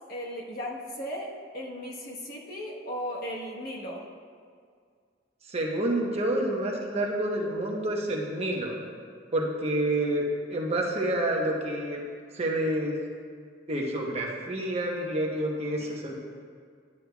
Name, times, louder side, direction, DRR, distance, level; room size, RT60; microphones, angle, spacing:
voice 1, 0.1-4.0 15.8-15.9, equal, 55° left, -2 dB, 1.2 m, -36 dB
voice 2, 5.5-8.8 9.3-10.2 10.5-12.0 12.3-13.0 13.7-16.1, right 1 dB, 35° right, -1 dB, 0.9 m, -28 dB
9.9 x 9.5 x 2.3 m, 2.1 s
head